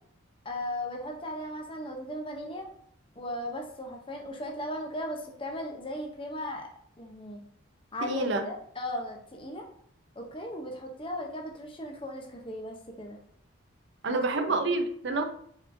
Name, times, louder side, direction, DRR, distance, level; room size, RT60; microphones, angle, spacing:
voice 1, 0.4-2.7 3.2-6.7 7.0-7.4 7.9-9.6 10.2-13.2 14.1-14.6, left 1 dB, 25° left, 2 dB, 0.6 m, -37 dB
voice 2, 8.0-8.4 14.0-15.2, right 3 dB, 55° right, 7 dB, 0.5 m, -28 dB
4.3 x 4.0 x 2.6 m, 0.65 s
head